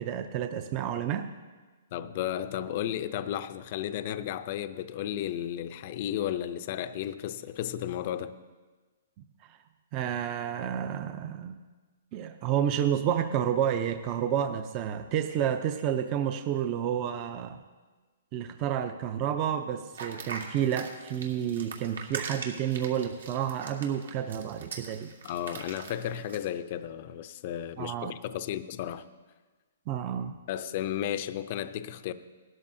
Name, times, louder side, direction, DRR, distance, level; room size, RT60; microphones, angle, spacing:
voice 1, 0.0-1.3 9.5-9.6 9.9-11.6 12.1-17.6 18.3-25.1 27.8-28.1 29.9-30.4, right 9 dB, 30° right, 0.5 m, -30 dB
voice 2, 1.9-8.3 25.2-29.1 30.5-32.1, left 11 dB, 40° left, 0.5 m, -33 dB
sound 1, 19.9-26.4, right 5 dB, 85° right, 1.9 m, -41 dB
18.5 x 12.5 x 2.7 m
hypercardioid pair, 160°, 0 cm